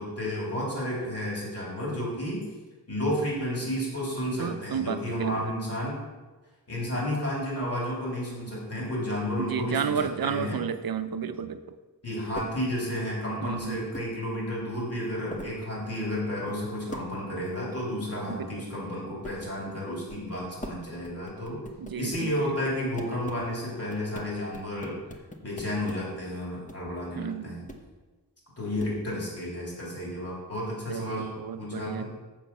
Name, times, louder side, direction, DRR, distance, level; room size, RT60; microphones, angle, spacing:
voice 1, 0.0-2.4 2.9-6.0 6.7-10.6 12.0-21.6 21.9-24.9 25.4-27.6 28.6-32.0, left 1 dB, 35° left, -5 dB, 3.5 m, -32 dB
voice 2, 4.4-5.5 9.4-11.8 13.4-13.8 18.3-18.5 21.8-22.4 27.1-27.5 30.9-32.0, right 7 dB, 60° right, 10 dB, 0.6 m, -32 dB
sound 1, 12.3-12.5 13.4-14.1 14.6-14.7 15.0-15.6 16.1-16.6 16.9-17.1 17.4-17.6 18.9-19.0 19.2-19.4 20.1-20.8 21.0-22.4 23.0-23.5 23.9-26.0 26.7-26.8 27.7-27.8 28.8-28.9, equal, 20° left, 1.0 m, -41 dB
7.5 x 7.3 x 5.6 m, 1.2 s
wide cardioid pair, 90°, 39 cm